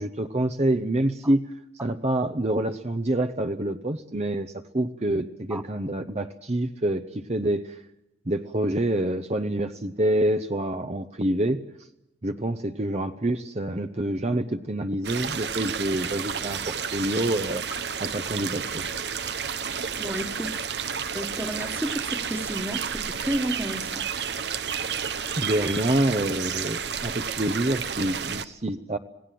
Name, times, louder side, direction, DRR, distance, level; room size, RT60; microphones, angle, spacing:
voice 1, 0.0-1.5 1.8-7.8 8.3-11.6 12.2-17.6 18.0-18.9 25.4-29.0, right 1 dB, 40° right, 7 dB, 1.0 m, -27 dB
sound 1, 15.0-28.5, right 7 dB, 80° right, 1.3 m, -31 dB
voice 2, 20.0-20.5 21.1-22.8 23.2-24.0, right 1 dB, 10° right, 8 dB, 1.6 m, -31 dB
27.0 x 18.5 x 7.7 m, 0.86 s
head